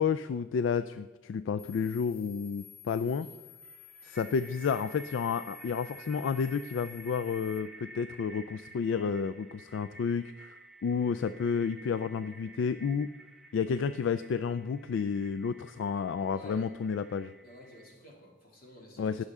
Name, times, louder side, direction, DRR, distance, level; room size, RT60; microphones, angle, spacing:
voice 1, 0.0-3.3 4.0-10.5 10.8-13.1 13.5-17.3 19.0-19.2, left 6 dB, 65° left, 13 dB, 0.3 m, -31 dB
sound 1, 1.6-7.6, left 9 dB, 85° left, 0.9 m, -52 dB
sound 2, 3.6-17.9, right 2 dB, ahead, 0.7 m, -52 dB
voice 2, 16.3-16.7 17.4-19.3, left 1 dB, 45° left, -2 dB, 2.4 m, -51 dB
18.0 x 6.6 x 3.6 m, 1.2 s
head